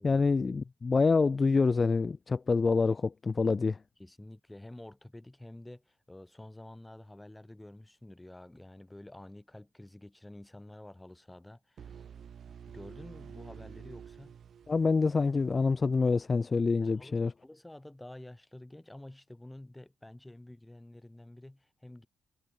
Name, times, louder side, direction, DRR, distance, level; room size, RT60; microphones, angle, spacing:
voice 1, 0.0-3.8 14.7-17.3, left 4 dB, 30° left, 0.8 m, -26 dB
voice 2, 4.0-12.1 12.5-14.4 16.8-22.1, left 1 dB, 10° left, 6.4 m, -49 dB
sound 1, 11.8-15.6, right 8 dB, 55° right, 1.1 m, -49 dB
cardioid pair, 90°, 0 cm